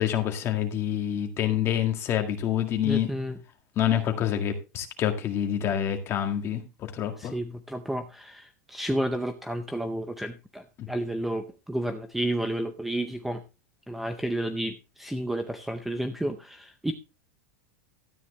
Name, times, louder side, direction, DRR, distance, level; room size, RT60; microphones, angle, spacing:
voice 1, 0.0-3.1 3.8-6.6 6.9-7.3 10.8-10.9, left 10 dB, 25° left, 5 dB, 1.9 m, -27 dB
voice 2, 2.8-3.4 7.2-13.4 13.9-16.9, right 1 dB, ahead, 8 dB, 0.6 m, -31 dB
13.0 x 9.1 x 3.1 m, 0.28 s
supercardioid pair, 160°, 9 cm